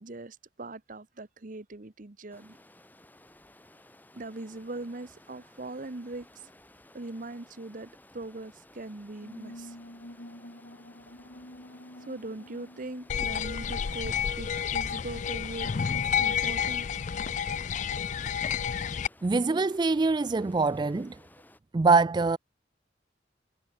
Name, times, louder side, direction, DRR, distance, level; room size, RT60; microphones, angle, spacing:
voice 1, 0.0-2.6 4.1-6.4 6.9-9.8 12.0-16.9, right 2 dB, 45° right, 1.0 m, -41 dB
Stream, 2.3-21.6, left 1 dB, 10° left, 2.3 m, -57 dB
sound 1, 9.2-14.4, left 1 dB, 65° left, 4.7 m, -48 dB
sound 2, 13.1-19.1, left 7 dB, 40° left, 0.4 m, -30 dB
voice 2, 19.2-21.2 21.7-22.4, right 4 dB, 25° right, 0.3 m, -24 dB
head